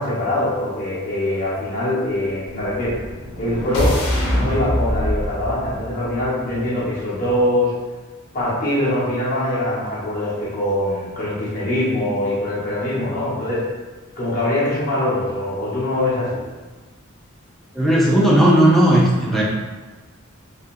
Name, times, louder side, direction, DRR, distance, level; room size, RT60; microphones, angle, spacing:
voice 1, 0.0-3.0 3.4-4.1 4.3-7.7 8.3-13.6 14.2-16.4, left 1 dB, 40° left, -9 dB, 1.1 m, -23 dB
sound 1, 2.7-6.8, equal, 75° left, 0.8 m, -24 dB
voice 2, 17.7-19.4, right 1 dB, ahead, -6 dB, 0.4 m, -15 dB
3.7 x 2.3 x 2.5 m, 1.3 s
head